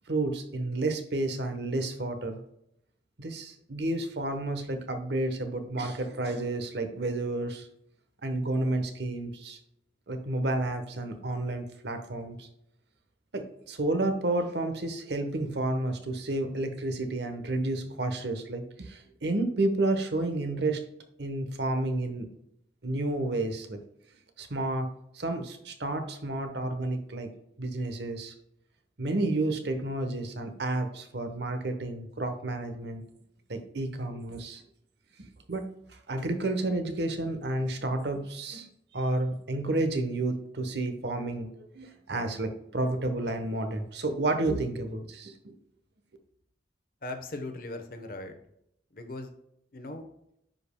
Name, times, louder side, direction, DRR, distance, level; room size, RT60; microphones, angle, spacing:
voice 1, 0.1-2.4 3.2-7.7 8.2-9.6 10.1-12.5 13.3-20.8 21.2-22.3 22.8-23.8 24.4-27.3 27.6-28.3 29.0-33.0 33.5-34.6 35.2-35.7 36.1-38.7 38.9-45.5, right 2 dB, 60° right, 6 dB, 1.0 m, -31 dB
voice 2, 47.0-48.3 48.9-49.3 49.7-50.1, left 2 dB, 50° left, 7 dB, 0.9 m, -38 dB
10.0 x 5.2 x 2.2 m, 0.77 s
head